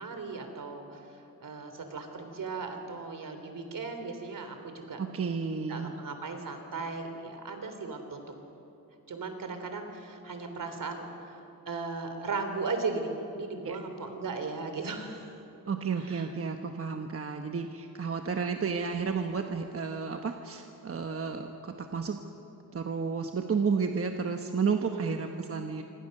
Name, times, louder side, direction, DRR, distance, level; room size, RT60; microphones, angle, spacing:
voice 1, 0.0-5.0 5.7-8.2 9.1-11.4 11.7-15.4 15.6-16.3 24.8-25.3, right 4 dB, 60° right, 6 dB, 3.5 m, -37 dB
voice 2, 5.0-5.9 13.6-13.8 15.7-22.2 22.7-25.8, right 5 dB, 40° right, 4 dB, 1.1 m, -32 dB
27.0 x 26.0 x 6.7 m, 3.0 s
wide cardioid pair, 155°, 36 cm